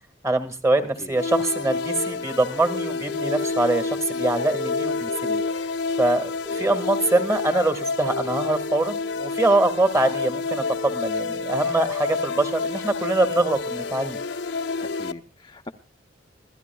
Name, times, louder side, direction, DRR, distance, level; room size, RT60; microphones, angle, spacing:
voice 1, 0.2-5.4 6.0-14.2, right 2 dB, 15° right, 10 dB, 1.8 m, -24 dB
sound 1, 1.1-15.1, left 4 dB, 75° left, 0.9 m, -28 dB
sound 2, 2.6-3.5 4.5-5.5 6.5-7.5, left 2 dB, 35° right, 1.5 m, -36 dB
voice 2, 14.8-15.7, left 2 dB, 25° left, 4 dB, 0.7 m, -40 dB
26.0 x 16.5 x 2.3 m, 0.34 s
head